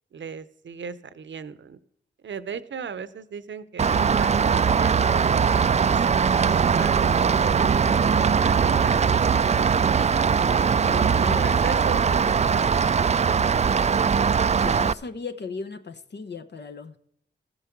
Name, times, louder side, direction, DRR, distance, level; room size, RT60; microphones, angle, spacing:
voice 1, 0.1-1.8 2.2-6.0 6.5-7.6 8.1-9.5 10.8-13.0 13.3-13.6, right 6 dB, 70° right, 0.7 m, -38 dB
Rain, 3.8-14.9, right 6 dB, 35° right, 0.3 m, -21 dB
voice 2, 10.8-12.0 14.5-17.0, left 4 dB, 60° left, 0.9 m, -36 dB
14.5 x 8.0 x 6.0 m
cardioid pair, 45°, 20 cm